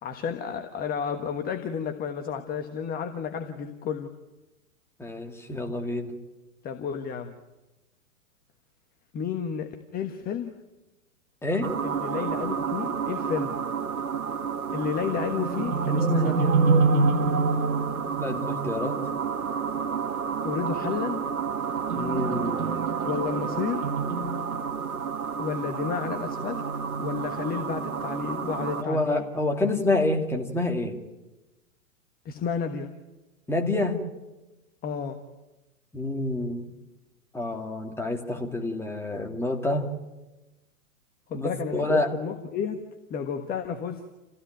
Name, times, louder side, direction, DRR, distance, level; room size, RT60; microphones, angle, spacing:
voice 1, 0.0-4.1 6.6-7.3 9.1-10.5 11.8-13.6 14.7-16.5 20.4-21.2 23.0-23.9 25.4-26.6 27.0-29.2 32.2-32.9 34.8-35.2 41.3-42.8 43.1-44.0, left 7 dB, 20° left, 7 dB, 1.4 m, -31 dB
voice 2, 5.0-6.1 11.4-11.7 18.2-19.0 21.9-22.7 28.8-31.0 33.5-34.0 35.9-36.7 37.3-39.9 41.3-42.1, left 2 dB, 5° left, 3 dB, 2.6 m, -28 dB
sound 1, 11.6-28.8, right 5 dB, 80° right, 1.7 m, -28 dB
29.0 x 16.0 x 9.2 m, 1.1 s
hypercardioid pair, 120°, 43 cm